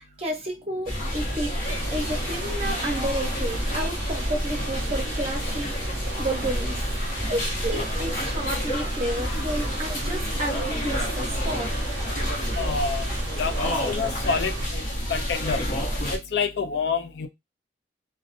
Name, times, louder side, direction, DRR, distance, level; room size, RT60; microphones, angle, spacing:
voice 1, 0.0-1.6 1.9-6.8 7.3-11.7, right 1 dB, 35° right, 0.7 m, -31 dB
sound 1, 0.9-16.2, equal, 50° left, 0.8 m, -28 dB
sound 2, 1.6-14.7, right 6 dB, 70° right, 0.4 m, -40 dB
voice 2, 12.6-13.1 13.3-14.8 15.1-15.6 16.1-17.3, left 5 dB, 70° left, 0.4 m, -27 dB
2.3 x 2.2 x 2.5 m
head